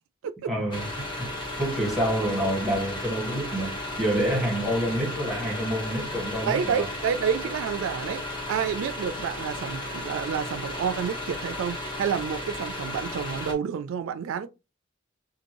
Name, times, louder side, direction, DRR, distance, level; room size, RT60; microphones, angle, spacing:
voice 1, 0.4-0.9 1.2-1.3 1.6-6.9, equal, ahead, 1.3 m, -27 dB
sound 1, 0.7-13.5, left 1 dB, 25° left, 0.7 m, -34 dB
voice 2, 6.5-14.5, right 7 dB, 90° right, 0.3 m, -29 dB
2.6 x 2.5 x 3.0 m
head